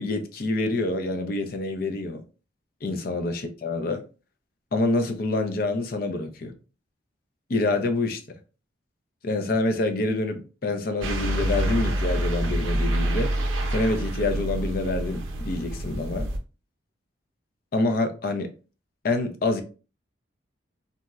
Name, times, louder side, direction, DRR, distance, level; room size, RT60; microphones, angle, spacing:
voice 1, 0.0-2.2 2.8-4.0 4.7-6.5 7.5-8.2 9.2-13.3 13.7-16.3 17.7-18.5 19.0-19.6, left 2 dB, 50° left, 0.4 m, -26 dB
sound 1, 11.0-16.4, right 1 dB, 85° right, 0.5 m, -27 dB
3.8 x 2.1 x 2.3 m
head